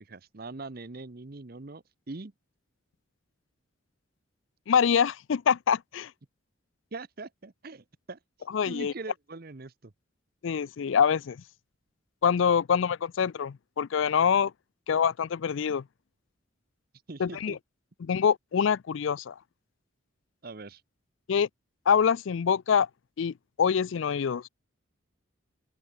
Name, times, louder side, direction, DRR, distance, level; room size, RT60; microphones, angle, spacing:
voice 1, 0.0-2.3 6.9-8.2 8.7-9.9 17.1-17.6 20.4-20.8, right 3 dB, 45° right, 0.8 m, -42 dB
voice 2, 4.7-6.1 8.5-8.9 10.4-11.4 12.2-14.5 14.9-15.8 17.2-17.6 18.0-19.3 21.3-21.5 21.9-22.9 23.2-24.5, left 7 dB, 70° left, 0.4 m, -25 dB
open air
head